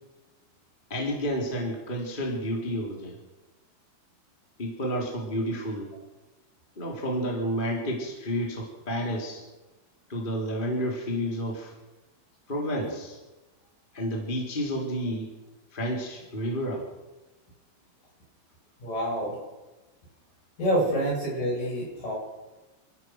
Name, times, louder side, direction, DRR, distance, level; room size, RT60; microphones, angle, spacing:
voice 1, 0.9-3.2 4.6-5.9 6.8-9.4 10.1-11.7 12.5-13.2 13.9-15.3 15.7-16.8 20.9-21.0, equal, 10° left, -1 dB, 2.8 m, -30 dB
voice 2, 18.8-19.4 20.6-22.2, equal, 40° left, -3 dB, 9.4 m, -27 dB
27.5 x 16.0 x 6.4 m, 1.1 s
omnidirectional pair, 5.7 m